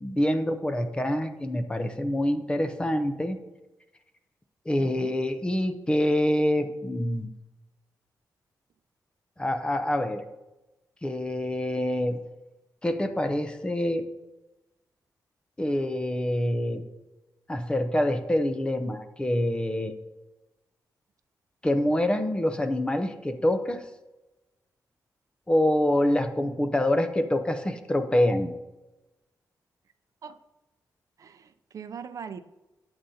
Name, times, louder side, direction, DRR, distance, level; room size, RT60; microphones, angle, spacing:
voice 1, 0.0-3.4 4.7-7.3 9.4-10.2 11.0-12.2 12.8-14.1 15.6-16.9 17.5-19.9 21.6-23.8 25.5-28.5, left 1 dB, 15° left, 7 dB, 0.6 m, -26 dB
voice 2, 4.8-5.2 30.2-30.4 31.2-32.4, right 6 dB, 55° right, 9 dB, 0.4 m, -41 dB
12.5 x 7.8 x 2.8 m, 1.0 s
wide cardioid pair, 160°, 7 cm